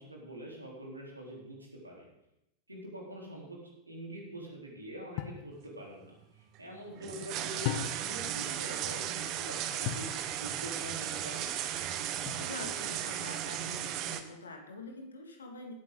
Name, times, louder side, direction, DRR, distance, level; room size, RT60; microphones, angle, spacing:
voice 1, 0.0-2.1 2.7-3.6 3.9-6.1 6.6-9.6 9.9-10.1 10.4-11.5, right 1 dB, 85° right, -2 dB, 3.6 m, -45 dB
sound 1, 5.2-5.5 7.6-8.3 9.8-10.2 12.3-12.8, left 11 dB, 50° left, 1.0 m, -36 dB
sound 2, 6.5-14.2, right 11 dB, 40° right, 1.0 m, -36 dB
voice 2, 12.4-15.7, left 2 dB, 70° left, 3 dB, 2.1 m, -45 dB
17.0 x 9.1 x 3.9 m, 0.85 s
figure-of-eight pair, 90°, 0 cm